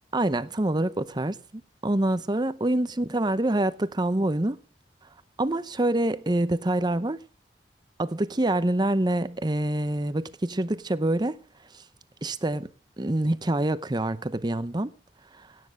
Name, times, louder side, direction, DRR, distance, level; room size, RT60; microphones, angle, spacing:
voice 1, 0.1-4.6 5.4-7.2 8.0-11.4 11.7-11.8 12.2-12.7 13.0-14.9 15.4-15.5, right 1 dB, 25° right, 0.8 m, -26 dB
17.5 x 9.7 x 6.5 m
head